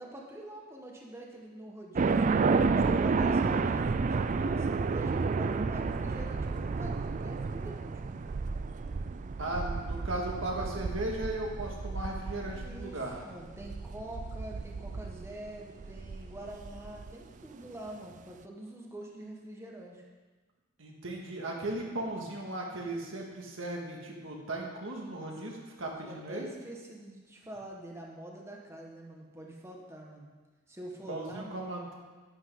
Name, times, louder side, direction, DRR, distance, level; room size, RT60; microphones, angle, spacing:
voice 1, 0.0-2.4 2.9-8.3 12.5-20.1 26.0-30.3 30.7-31.6, right 1 dB, 15° right, -2 dB, 1.4 m, -45 dB
sound 1, 1.9-17.1, right 4 dB, 35° right, 0.3 m, -31 dB
voice 2, 9.4-13.2 20.8-26.5 31.1-31.9, right 1 dB, 65° right, -1 dB, 2.0 m, -37 dB
11.0 x 11.0 x 3.9 m, 1.3 s
head